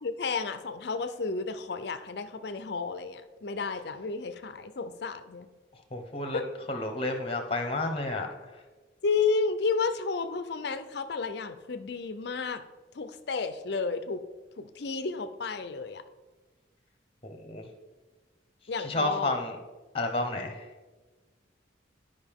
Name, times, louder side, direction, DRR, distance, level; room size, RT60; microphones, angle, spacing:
voice 1, 0.0-5.5 6.3-6.4 9.0-12.6 12.9-14.2 14.6-16.0 18.7-19.3, left 4 dB, 55° left, 10 dB, 0.5 m, -32 dB
voice 2, 5.9-6.4 6.7-8.3 17.2-17.6 18.8-19.6 19.9-20.6, left 2 dB, 30° left, 5 dB, 0.9 m, -30 dB
11.5 x 5.3 x 3.5 m, 1.3 s
head